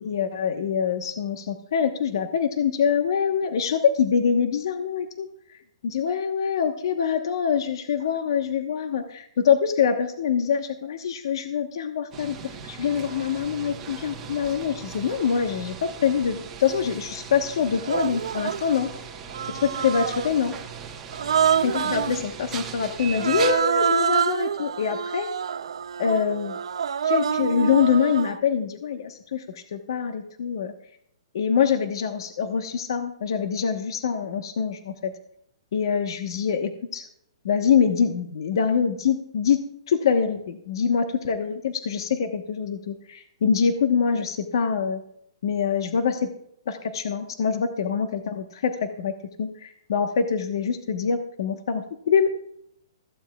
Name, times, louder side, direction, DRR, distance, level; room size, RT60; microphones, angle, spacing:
voice 1, 0.0-5.1 5.8-18.9 19.5-20.5 21.6-25.3 26.0-26.6 27.0-30.7 31.3-35.1 35.7-37.0 37.4-39.6 39.9-45.0 45.4-46.3 46.7-52.3, left 7 dB, 55° left, 6 dB, 1.2 m, -24 dB
sound 1, 12.1-23.5, right 7 dB, 10° right, 1.2 m, -38 dB
Human voice, 16.7-16.8 17.8-18.7 19.3-20.4 21.1-22.2 23.1-28.4, right 8 dB, 85° right, 0.5 m, -26 dB
16.5 x 14.5 x 2.4 m, 0.70 s
hypercardioid pair, 175°, 3 cm